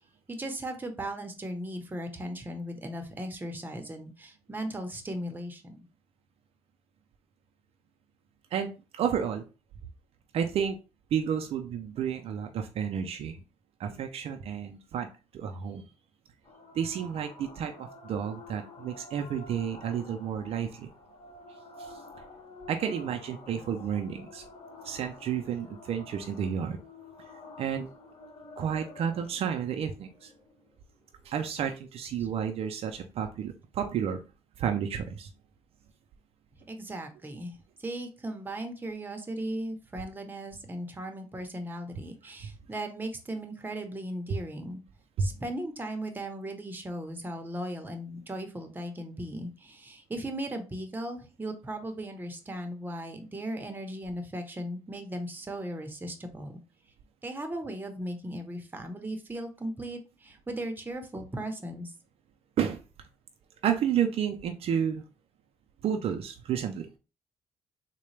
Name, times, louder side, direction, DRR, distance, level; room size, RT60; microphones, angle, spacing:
voice 1, 0.3-5.7 32.2-32.3 36.7-44.8 45.2-56.6 57.2-61.9, right 1 dB, 15° right, 5 dB, 0.8 m, -37 dB
voice 2, 8.5-9.4 10.3-10.8 11.1-13.4 13.8-15.1 15.3-15.9 16.7-20.9 21.8-22.0 22.7-24.4 24.8-26.8 27.6-27.9 28.6-30.3 31.2-34.2 34.6-35.3 45.2-45.3 62.6-62.8 63.6-65.1 65.8-66.9, right 8 dB, 65° right, 5 dB, 0.5 m, -31 dB
sound 1, 16.4-31.4, left 3 dB, 50° left, 1.1 m, -49 dB
3.8 x 2.2 x 3.3 m, 0.32 s
cardioid pair, 85°, 11 cm